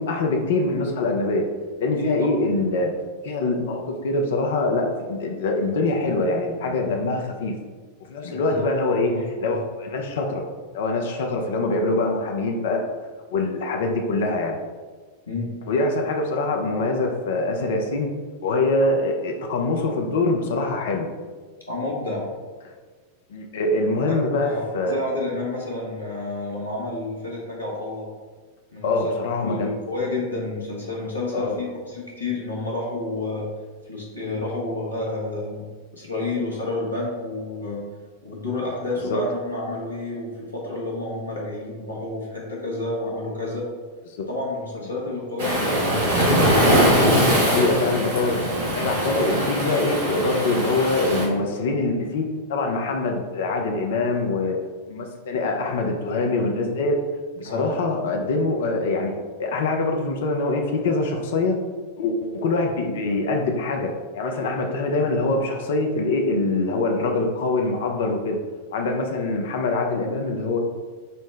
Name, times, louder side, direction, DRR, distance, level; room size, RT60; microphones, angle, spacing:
voice 1, 0.0-1.5 1.8-2.9 3.2-7.5 8.1-10.5 10.7-12.8 13.3-14.6 15.7-18.1 18.4-21.1 23.3-25.0 28.8-29.7 31.3-31.6 39.1-39.2 44.1-44.3 47.4-54.6 54.9-57.0 57.4-59.1 59.4-61.6 62.0-68.4 68.7-70.6, left 2 dB, 55° left, 2 dB, 0.5 m, -24 dB
voice 2, 2.0-2.3 8.2-8.6 9.0-9.5 15.3-15.5 21.7-22.3 24.0-24.1 24.4-28.1 28.7-29.0 29.4-33.5 33.9-35.7 35.9-37.8 38.2-43.6 44.3-46.6 57.4-57.7, left 2 dB, 80° left, -4 dB, 1.0 m, -30 dB
Waves surf, 45.4-51.3, equal, 65° right, 1.1 m, -21 dB
5.4 x 2.1 x 3.2 m, 1.5 s
figure-of-eight pair, 90°, 0 cm